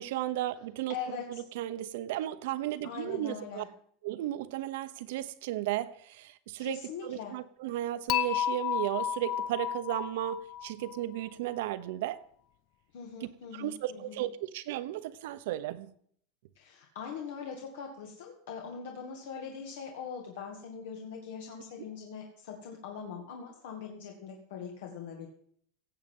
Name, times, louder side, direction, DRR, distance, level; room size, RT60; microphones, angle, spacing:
voice 1, 0.0-1.0 1.3-3.6 4.0-12.2 13.5-15.9, right 14 dB, 70° right, 13 dB, 0.9 m, -34 dB
voice 2, 0.9-1.4 2.8-3.6 6.6-7.3 12.9-14.2 16.6-25.3, left 6 dB, 80° left, 2 dB, 2.1 m, -42 dB
Dishes pots and pans / Chink clink, 8.1-11.2, left 10 dB, 45° left, 0.6 m, -32 dB
16.5 x 7.7 x 5.5 m, 0.62 s
supercardioid pair, 160°, 0 cm